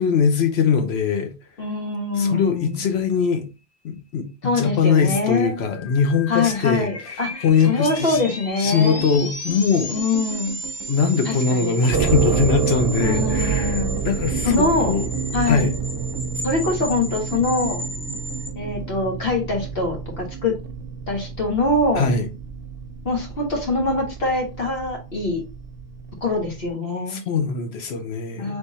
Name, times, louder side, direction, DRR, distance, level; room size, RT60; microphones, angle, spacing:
voice 1, 0.0-1.3 2.2-3.5 3.8-4.3 4.6-7.2 7.4-8.2 8.6-9.9 10.9-15.1 15.5-15.7 22.0-22.3 27.1-28.6, left 5 dB, 85° left, 1.0 m, -21 dB
voice 2, 1.6-2.8 4.4-5.6 6.3-9.0 9.9-10.6 11.2-11.7 13.0-14.0 14.4-15.0 15.3-15.7 16.4-17.8 18.5-20.6 21.1-22.1 23.0-25.4 26.2-27.2 28.4-28.6, left 3 dB, 70° left, 1.7 m, -24 dB
sound 1, 5.5-18.5, equal, 25° left, 0.3 m, -34 dB
sound 2, 7.3-19.9 20.1-21.2 21.5-21.8 22.1-22.8, right 7 dB, 25° right, 0.9 m, -37 dB
sound 3, 11.9-26.7, right 6 dB, 75° right, 1.0 m, -29 dB
3.4 x 3.3 x 4.1 m
omnidirectional pair, 1.0 m